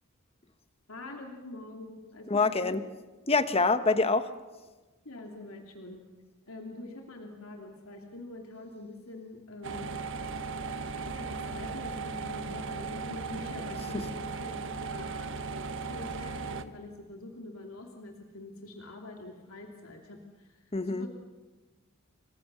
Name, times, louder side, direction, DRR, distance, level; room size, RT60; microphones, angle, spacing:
voice 1, 0.9-2.8 5.0-6.0 6.5-10.0 10.9-21.1, left 2 dB, 85° left, 2 dB, 2.9 m, -45 dB
voice 2, 2.3-2.8 3.3-4.3 13.9-14.0 20.7-21.1, left 3 dB, 30° left, 11 dB, 1.2 m, -25 dB
sound 1, 9.6-16.7, right 4 dB, 60° right, 1.3 m, -37 dB
30.0 x 25.5 x 6.9 m, 1.2 s
head